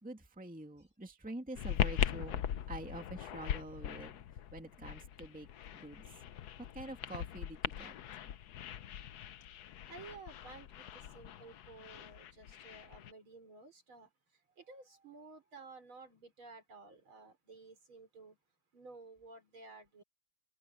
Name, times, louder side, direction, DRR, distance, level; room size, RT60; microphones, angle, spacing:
voice 1, 0.0-4.2 4.5-5.5 5.7-6.0 6.7-7.9, right 2 dB, 5° right, 1.9 m, -46 dB
sound 1, 1.6-13.1, left 10 dB, 65° left, 1.0 m, -40 dB
voice 2, 9.9-14.1 14.6-18.4 18.7-20.0, right 3 dB, 70° right, 6.0 m, -54 dB
omnidirectional pair, 2.3 m